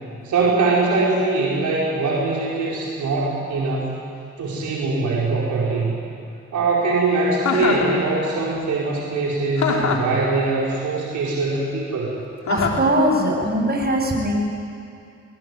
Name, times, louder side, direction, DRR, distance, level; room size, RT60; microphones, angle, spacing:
voice 1, 0.2-3.9 4.4-5.9 6.5-12.1, right 3 dB, 75° right, -4 dB, 4.7 m, -22 dB
Chuckle chortle, 7.4-7.9 9.6-10.1 12.5-12.9, left 5 dB, 70° left, 3.4 m, -22 dB
voice 2, 12.5-14.4, right 1 dB, 35° right, 0 dB, 7.9 m, -20 dB
23.0 x 21.0 x 9.7 m, 2.5 s
supercardioid pair, 50°, 29 cm